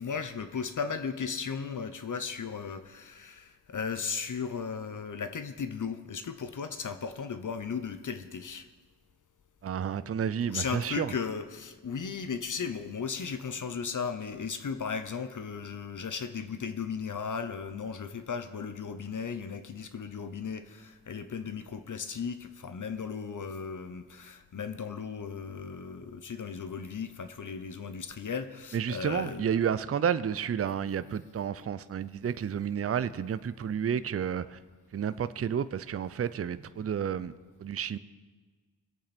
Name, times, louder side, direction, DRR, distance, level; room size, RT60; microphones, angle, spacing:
voice 1, 0.0-8.7 10.4-29.6, left 6 dB, 50° left, 10 dB, 1.0 m, -36 dB
voice 2, 9.6-11.1 28.7-34.6 34.9-37.3 37.6-38.0, right 8 dB, 35° right, 14 dB, 0.6 m, -31 dB
21.5 x 8.6 x 4.4 m, 1.4 s
cardioid pair, 60°, 41 cm